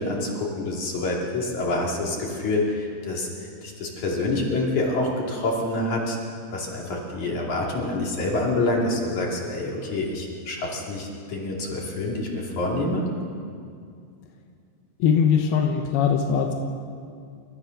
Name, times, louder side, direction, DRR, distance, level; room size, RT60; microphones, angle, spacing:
voice 1, 0.0-3.3 3.6-6.2 6.5-13.0, left 2 dB, 50° left, -2 dB, 3.7 m, -27 dB
voice 2, 15.0-16.5, left 7 dB, 70° left, 3 dB, 2.9 m, -21 dB
30.0 x 14.0 x 6.6 m, 2.3 s
omnidirectional pair, 5.0 m